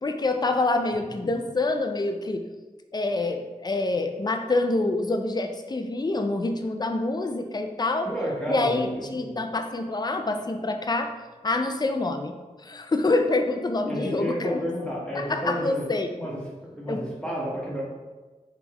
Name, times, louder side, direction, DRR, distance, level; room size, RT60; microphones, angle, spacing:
voice 1, 0.0-2.4 2.9-8.1 8.5-11.1 11.4-12.3 12.6-14.7 15.1-16.1 16.9-17.0, left 2 dB, 30° left, 6 dB, 0.4 m, -26 dB
voice 2, 8.0-9.4 13.9-15.9 16.1-16.4 16.7-17.8, equal, 5° left, -6 dB, 1.3 m, -31 dB
3.5 x 3.4 x 3.0 m, 1.2 s
wide cardioid pair, 55°, 13 cm